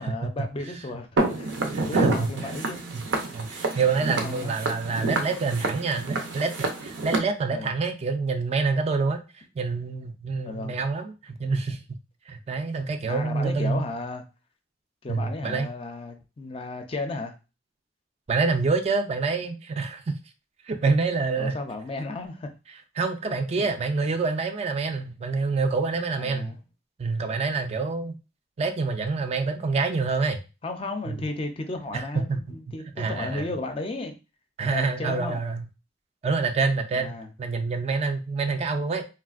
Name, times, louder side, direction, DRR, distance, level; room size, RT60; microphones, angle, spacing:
voice 1, 0.0-1.6 1.9-2.8 4.0-4.5 7.5-7.7 10.4-10.8 13.1-14.2 15.0-17.3 21.4-22.5 23.6-23.7 26.2-26.6 30.6-34.1 34.6-35.5 36.9-37.3, left 2 dB, 30° left, 0.4 m, -34 dB
Walk footsteps, 1.2-7.2, right 2 dB, 90° right, 0.6 m, -28 dB
voice 2, 1.7-2.3 2.9-3.0 3.3-9.2 9.6-11.8 12.3-13.9 15.1-15.7 18.3-20.1 20.7-21.5 23.0-26.6 27.0-28.1 28.6-30.4 31.1-31.2 31.9-32.4 33.0-33.5 34.6-35.6 36.2-39.0, right 4 dB, 35° right, 0.3 m, -27 dB
3.3 x 2.4 x 2.4 m
head